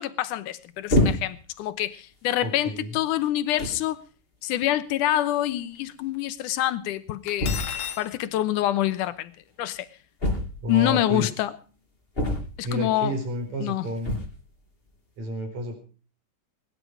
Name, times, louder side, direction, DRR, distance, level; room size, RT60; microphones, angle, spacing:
voice 1, 0.0-4.0 4.4-7.6 8.0-9.3 9.6-9.9 10.7-11.5 12.6-13.2 13.6-13.9, left 13 dB, 85° left, 2.4 m, -26 dB
sound 1, 0.9-1.5 2.3-2.4 3.2-3.3 3.6-3.9 5.1-5.2 5.4-5.5 5.7-5.8 7.4-7.9 10.2-10.9 12.1-12.8 14.0-14.4, left 1 dB, 15° left, 4.4 m, -26 dB
voice 2, 2.4-3.0 10.6-11.3 12.6-14.2 15.2-15.8, equal, 60° right, 5.9 m, -30 dB
Cutlery silverware, 7.3-8.1, left 9 dB, 50° left, 1.9 m, -33 dB
21.0 x 11.0 x 5.0 m
omnidirectional pair, 3.6 m